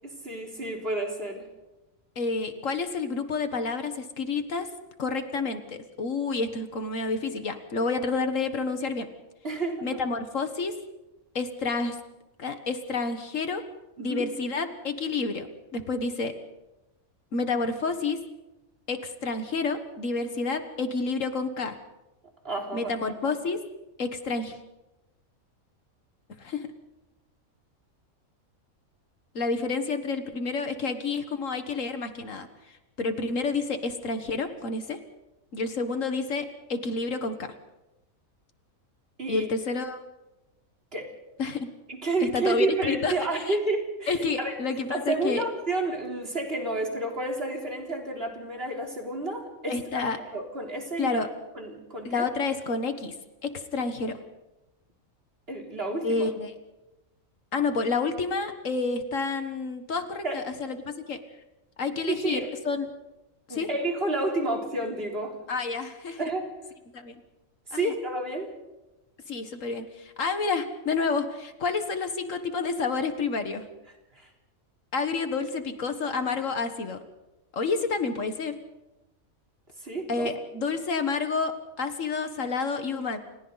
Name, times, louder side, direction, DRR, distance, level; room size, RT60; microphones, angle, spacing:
voice 1, 0.0-1.5 9.4-10.0 14.0-14.2 22.4-22.9 39.2-39.5 40.9-41.1 41.9-44.5 44.9-51.2 51.5-52.3 55.5-56.3 60.2-60.4 62.1-62.5 63.5-65.4 66.2-66.5 67.7-68.5 74.1-74.3 79.8-80.3, right 2 dB, 45° right, 0 dB, 4.1 m, -30 dB
voice 2, 2.1-4.7 5.0-9.1 9.8-10.7 11.3-12.0 12.4-13.6 14.0-15.5 15.7-16.3 17.3-18.2 18.9-21.7 22.7-23.6 24.0-24.6 26.4-26.7 29.3-32.5 33.0-35.0 35.5-37.5 39.3-40.0 41.4-41.7 42.2-43.6 44.1-45.4 49.7-50.2 51.0-51.3 52.0-53.1 53.4-54.2 56.0-56.5 57.5-61.2 61.8-62.9 63.5-63.7 65.5-66.2 66.9-67.1 67.7-67.9 69.3-73.7 74.9-77.0 77.5-78.5 80.1-83.2, left 4 dB, 65° left, 8 dB, 1.8 m, -29 dB
29.5 x 28.0 x 4.1 m, 1.0 s
omnidirectional pair, 1.4 m